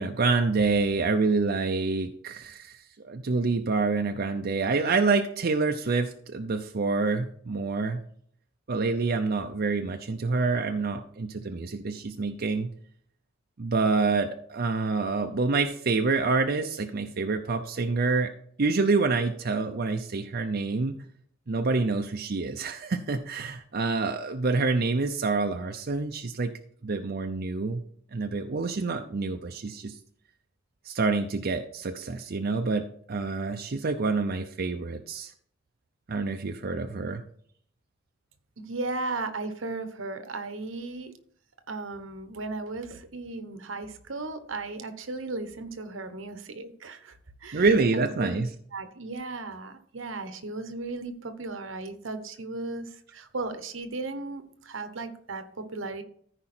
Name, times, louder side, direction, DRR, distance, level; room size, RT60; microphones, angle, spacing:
voice 1, 0.0-8.0 8.7-12.7 13.6-18.3 18.6-20.9 21.5-26.5 26.8-27.8 28.1-30.0 30.8-35.3 36.1-37.2 47.5-48.5, right 3 dB, 50° right, 5 dB, 0.6 m, -27 dB
voice 2, 38.6-41.1 41.7-47.6 48.2-48.4 48.7-56.0, right 3 dB, 80° right, 9 dB, 1.1 m, -36 dB
14.5 x 4.9 x 4.3 m, 0.63 s
head